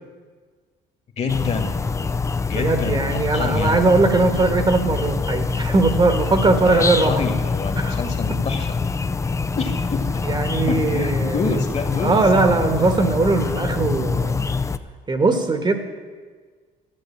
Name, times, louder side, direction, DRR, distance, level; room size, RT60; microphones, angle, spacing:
voice 1, 1.2-1.7 2.5-3.8 6.6-8.8 9.5-10.0 10.7-12.2, left 4 dB, 40° left, 6 dB, 2.0 m, -27 dB
sound 1, 1.3-14.8, left 4 dB, 15° left, 0.5 m, -25 dB
voice 2, 2.5-7.2 7.8-8.0 10.2-11.4 12.0-14.4 15.1-15.7, right 3 dB, 25° right, 7 dB, 1.4 m, -19 dB
13.0 x 8.3 x 8.6 m, 1.5 s
cardioid pair, 110°, 17 cm